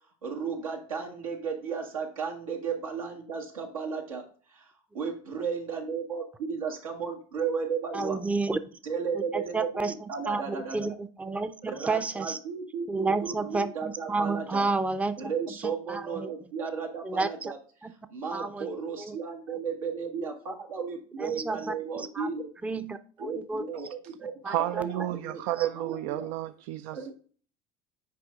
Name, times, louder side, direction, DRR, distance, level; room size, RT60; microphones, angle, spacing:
voice 1, 0.2-4.2 4.5-4.7 4.9-8.2 8.8-10.9 11.7-14.6 15.2-17.6 18.1-22.5 23.2-24.3 24.6-26.3 26.9-27.1, right 6 dB, 85° right, 0 dB, 1.7 m, -34 dB
voice 2, 7.9-8.6 9.1-12.4 12.9-15.3 15.6-16.5 17.0-17.5 17.8-17.9 18.3-18.7 19.0-19.2 21.2-22.3 22.6-23.6 24.4-24.9 25.6-25.7, right 3 dB, 10° right, 10 dB, 0.5 m, -31 dB
voice 3, 24.5-27.1, right 14 dB, 65° right, 11 dB, 0.4 m, -31 dB
6.7 x 4.7 x 3.6 m, 0.43 s
hypercardioid pair, 80°, 17 cm